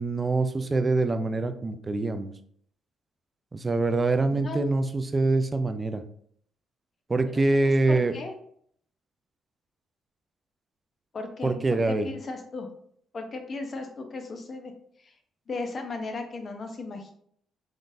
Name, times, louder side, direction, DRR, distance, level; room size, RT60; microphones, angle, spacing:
voice 1, 0.0-2.3 3.5-6.0 7.1-8.1 11.4-12.1, right 2 dB, 25° right, 9 dB, 0.4 m, -25 dB
voice 2, 7.3-8.3 11.1-12.7 13.1-14.7 15.0-15.1 15.5-17.1, left 3 dB, 45° left, 5 dB, 0.8 m, -36 dB
3.7 x 3.7 x 2.6 m, 0.64 s
cardioid pair, 90°, 0 cm